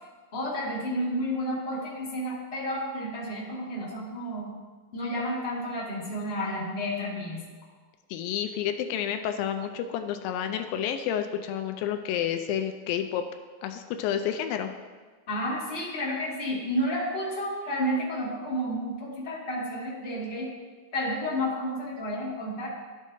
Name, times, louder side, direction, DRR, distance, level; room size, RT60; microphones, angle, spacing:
voice 1, 0.3-4.5 4.9-7.4 15.3-20.5 20.9-22.7, equal, 25° left, -7 dB, 1.3 m, -31 dB
voice 2, 8.1-13.2 13.6-14.7, left 9 dB, 80° left, 7 dB, 2.2 m, -30 dB
12.0 x 6.3 x 2.7 m, 1.4 s
omnidirectional pair, 4.3 m